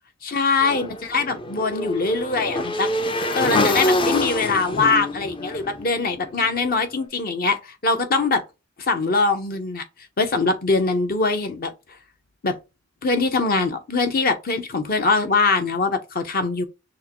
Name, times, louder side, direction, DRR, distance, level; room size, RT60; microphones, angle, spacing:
voice 1, 0.2-2.9 3.3-8.4 8.8-9.8 10.2-11.7 12.4-12.6 13.0-16.7, left 3 dB, 50° left, 0.9 m, -22 dB
Motorcycle / Engine, 0.6-6.7, left 2 dB, 25° left, 0.5 m, -25 dB
6.3 x 2.2 x 3.0 m
head